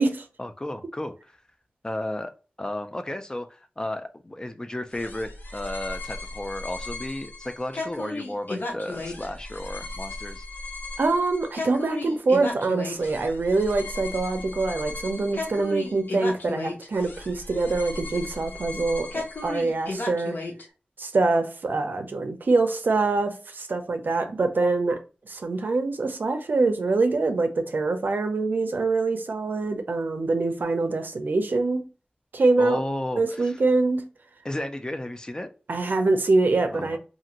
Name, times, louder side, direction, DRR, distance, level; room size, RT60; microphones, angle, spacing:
voice 1, 0.4-1.4 1.8-2.3 2.6-10.4 32.6-33.6 34.4-35.5 36.7-37.0, left 1 dB, 25° left, 0.4 m, -33 dB
sound 1, 4.9-20.6, left 2 dB, 85° left, 0.7 m, -35 dB
voice 2, 11.0-20.4 21.0-25.0 25.3-31.9 32.3-32.8 33.2-34.1 35.7-37.0, right 3 dB, 80° right, 0.4 m, -24 dB
2.6 x 2.4 x 2.8 m
wide cardioid pair, 75°, 3 cm